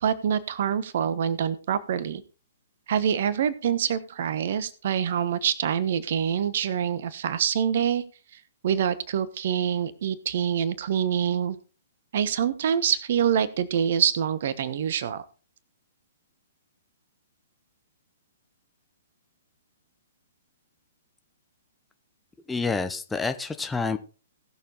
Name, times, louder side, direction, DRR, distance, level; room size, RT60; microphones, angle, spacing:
voice 1, 0.0-2.2 2.9-8.0 8.6-11.6 12.1-15.2, right 8 dB, 50° right, 17 dB, 1.1 m, -25 dB
voice 2, 22.5-24.0, left 4 dB, 5° left, 8 dB, 0.9 m, -28 dB
18.0 x 7.0 x 3.9 m, 0.35 s
figure-of-eight pair, 115°, 0 cm